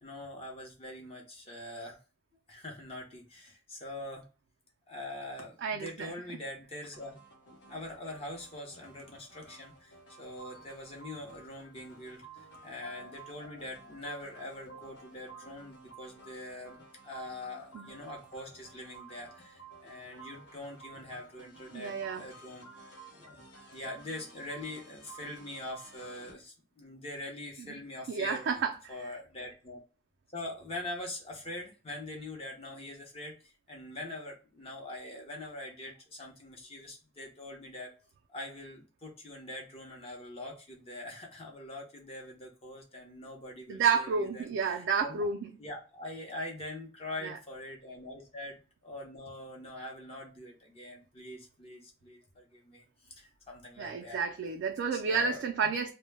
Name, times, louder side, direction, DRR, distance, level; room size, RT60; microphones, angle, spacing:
voice 1, 0.0-2.0 2.5-4.3 4.9-7.2 7.7-22.7 23.1-23.4 23.7-28.5 28.9-29.8 30.3-37.9 38.3-45.2 45.6-54.2 54.9-55.4, left 1 dB, 35° left, 0.6 m, -43 dB
voice 2, 5.6-6.1 17.7-17.8 20.1-20.2 21.7-22.2 28.1-28.7 43.7-45.5 47.2-47.3 53.8-55.9, right 5 dB, 85° right, 0.3 m, -30 dB
sound 1, 6.9-26.3, right 3 dB, 70° left, 0.8 m, -53 dB
2.1 x 2.0 x 3.1 m
head